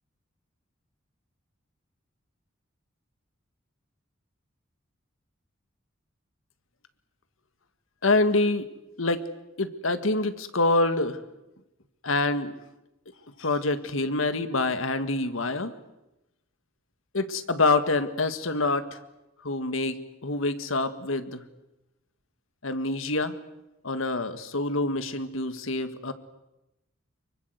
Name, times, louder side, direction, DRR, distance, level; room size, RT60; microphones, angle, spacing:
voice 1, 8.0-8.7 9.0-9.2 9.6-11.2 12.0-12.6 13.4-15.7 17.1-19.0 19.4-21.4 22.6-23.3 23.8-26.1, left 2 dB, 80° left, 11 dB, 1.8 m, -26 dB
25.0 x 23.5 x 8.0 m, 0.93 s
head